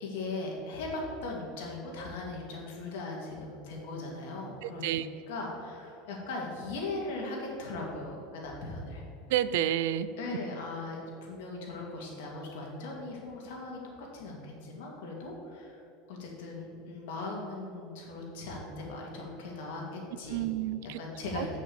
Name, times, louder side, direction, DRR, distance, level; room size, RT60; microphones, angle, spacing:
voice 1, 0.0-4.9 5.3-9.0 10.2-15.8 16.1-20.4 21.0-21.6, left 2 dB, 80° left, -2 dB, 2.5 m, -39 dB
voice 2, 4.6-5.1 9.3-10.1 20.3-21.0 21.4-21.5, right 11 dB, 75° right, 14 dB, 0.4 m, -30 dB
8.0 x 6.2 x 6.9 m, 2.7 s
supercardioid pair, 160°, 0 cm